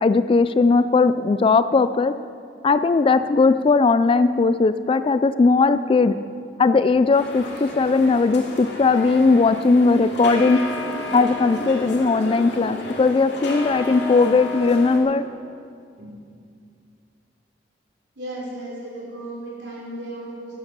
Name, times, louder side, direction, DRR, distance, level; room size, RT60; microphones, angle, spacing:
voice 1, 0.0-2.1 2.6-6.1 6.6-10.6 11.1-15.2, left 4 dB, 30° left, 13 dB, 0.3 m, -18 dB
sound 1, 7.1-15.0, left 2 dB, 70° left, 2.5 m, -32 dB
voice 2, 18.2-20.5, right 1 dB, 70° right, -4 dB, 3.8 m, -35 dB
12.0 x 11.0 x 6.8 m, 2.3 s
head